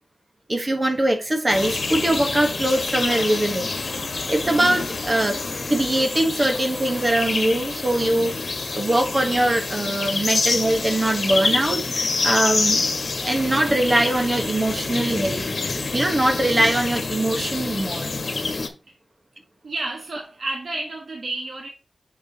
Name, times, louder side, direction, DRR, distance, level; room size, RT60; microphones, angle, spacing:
voice 1, 0.5-3.7 4.3-5.4 5.7-8.4 8.7-12.8 13.2-18.1, right 1 dB, 30° right, 1.1 m, -22 dB
sound 1, 1.5-18.7, left 3 dB, 55° left, 1.3 m, -27 dB
voice 2, 19.6-21.7, right 2 dB, 60° right, 1.3 m, -31 dB
7.5 x 6.8 x 2.8 m
wide cardioid pair, 135°, 0 cm